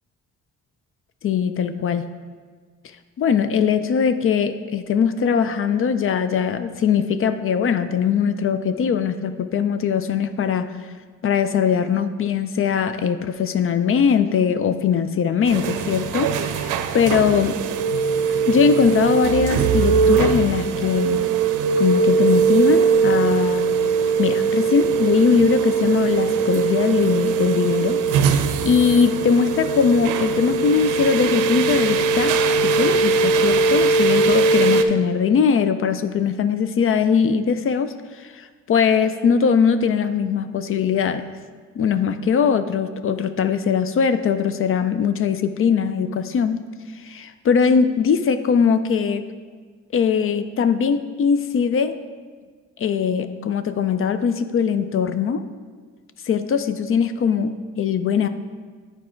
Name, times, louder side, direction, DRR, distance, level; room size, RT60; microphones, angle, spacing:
voice 1, 1.2-2.1 3.2-10.7 11.2-17.6 18.5-21.2 21.8-23.6 24.2-28.0 28.6-32.4 32.6-41.3 41.8-46.6 47.0-49.2 49.9-51.9 52.8-55.4 56.3-58.3, left 6 dB, 45° left, 10 dB, 0.5 m, -21 dB
sound 1, 15.5-34.8, right 5 dB, 85° right, 0.5 m, -20 dB
8.6 x 4.7 x 4.4 m, 1.6 s
cardioid pair, 90°, 30 cm